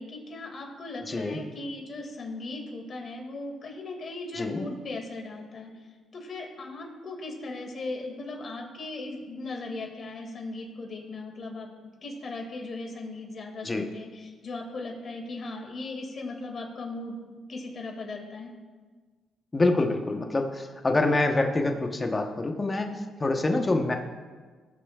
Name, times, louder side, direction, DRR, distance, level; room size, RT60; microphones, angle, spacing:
voice 1, 0.0-5.7 6.1-11.7 12.0-18.5 23.5-23.7, left 2 dB, 50° left, 1 dB, 2.2 m, -38 dB
voice 2, 1.1-1.4 4.3-4.7 13.6-13.8 19.5-23.9, left 2 dB, 25° left, 4 dB, 1.0 m, -26 dB
20.0 x 6.8 x 2.4 m, 1.5 s
cardioid pair, 90°, 0 cm